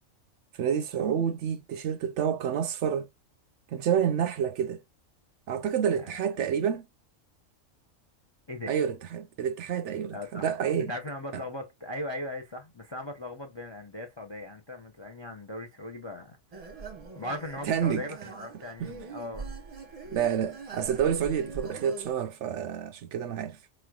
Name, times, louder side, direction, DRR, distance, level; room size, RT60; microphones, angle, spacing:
voice 1, 0.6-3.1 3.7-4.8 5.5-6.8 8.7-10.9 17.7-18.0 18.8-18.9 20.1-23.6, right 8 dB, 65° right, 0.8 m, -28 dB
voice 2, 10.1-10.5 10.9-16.4 17.2-19.5, left 1 dB, 35° left, 0.4 m, -38 dB
sound 1, 16.5-22.1, right 4 dB, 35° right, 0.8 m, -42 dB
4.6 x 3.1 x 2.3 m
omnidirectional pair, 1.4 m